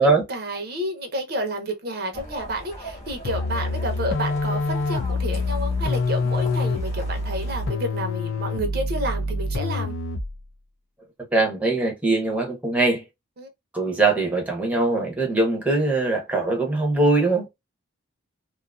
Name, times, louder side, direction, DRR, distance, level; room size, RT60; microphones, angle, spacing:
voice 1, 0.0-9.9 13.4-13.5, right 1 dB, 50° right, 0.7 m, -30 dB
sound 1, 2.1-7.7, equal, 30° left, 1.0 m, -39 dB
sound 2, 3.2-10.4, left 3 dB, 75° left, 0.4 m, -26 dB
voice 2, 11.3-13.0 13.7-17.5, right 2 dB, 5° right, 0.7 m, -21 dB
2.6 x 2.4 x 2.3 m
head